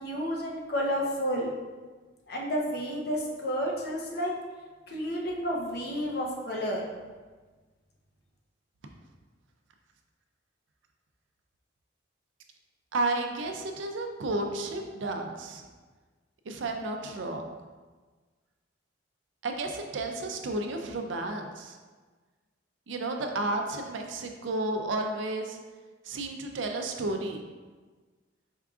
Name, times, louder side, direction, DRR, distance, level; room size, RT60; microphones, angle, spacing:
voice 1, 0.0-1.5 2.3-4.3 4.9-6.8, equal, 55° left, -2 dB, 0.7 m, -31 dB
voice 2, 12.9-15.6 16.5-17.6 19.4-21.8 22.9-25.6 26.1-27.4, right 2 dB, 75° right, 4 dB, 0.4 m, -32 dB
4.5 x 3.5 x 2.4 m, 1.4 s
head